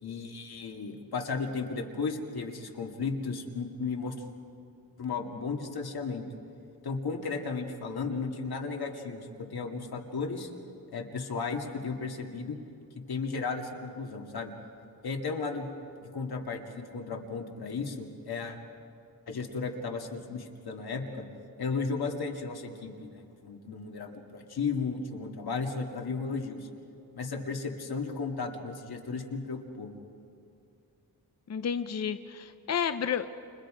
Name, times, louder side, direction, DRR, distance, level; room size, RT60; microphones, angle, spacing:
voice 1, 0.0-4.1 5.0-6.3 6.8-10.5 10.9-12.6 13.1-14.5 15.0-15.7 16.0-18.6 19.3-21.2 21.6-26.7 27.1-29.9, left 4 dB, 90° left, 2 dB, 2.3 m, -34 dB
voice 2, 31.5-33.3, left 7 dB, 45° left, 9 dB, 0.6 m, -31 dB
29.5 x 28.5 x 5.1 m, 2.5 s
wide cardioid pair, 170°, 36 cm